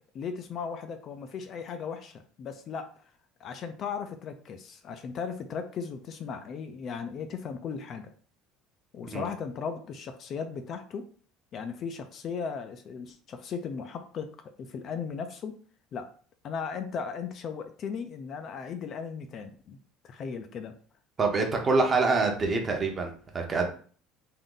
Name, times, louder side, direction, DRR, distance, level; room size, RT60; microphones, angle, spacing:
voice 1, 0.1-2.9 3.4-8.1 8.9-11.1 11.5-15.6 15.9-16.1 16.4-19.8 20.0-20.8, left 6 dB, 40° left, 7 dB, 0.4 m, -37 dB
voice 2, 21.2-23.7, right 3 dB, 25° right, 3 dB, 0.8 m, -26 dB
3.6 x 2.6 x 3.8 m, 0.43 s
cardioid pair, 150°, 0 cm